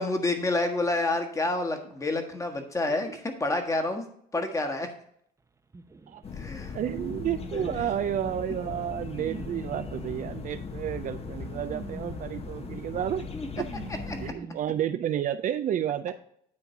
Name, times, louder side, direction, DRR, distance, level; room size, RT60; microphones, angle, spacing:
voice 1, 0.0-4.0 4.3-4.9 6.3-6.8 7.5-7.7 13.3-13.5 14.1-14.2, left 2 dB, 20° left, 5 dB, 1.4 m, -28 dB
sound 1, 5.7-14.8, right 3 dB, 20° right, 0.8 m, -45 dB
sound 2, 6.2-14.3, left 5 dB, 35° left, 1.0 m, -39 dB
voice 2, 6.7-13.3 13.6-13.7 14.2-16.1, right 10 dB, 50° right, 11 dB, 0.5 m, -31 dB
9.7 x 3.8 x 5.6 m, 0.67 s
cardioid pair, 110°, 17 cm